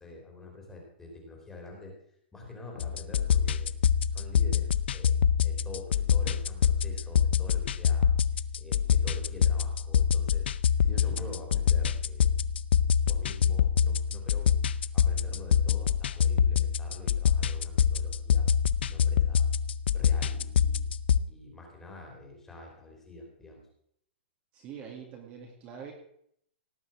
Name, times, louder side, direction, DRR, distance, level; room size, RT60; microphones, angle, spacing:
voice 1, 0.0-1.9 2.3-3.7 4.1-8.1 8.6-12.3 13.1-14.5 14.9-18.5 18.8-19.5 19.9-20.8 21.3-23.7, left 2 dB, 5° left, 0 dB, 3.2 m, -46 dB
sound 1, 2.8-21.2, left 8 dB, 65° left, 0.6 m, -26 dB
voice 2, 24.5-25.9, right 7 dB, 20° right, 0 dB, 2.3 m, -44 dB
18.0 x 6.1 x 8.8 m, 0.68 s
hypercardioid pair, 175°, 6 cm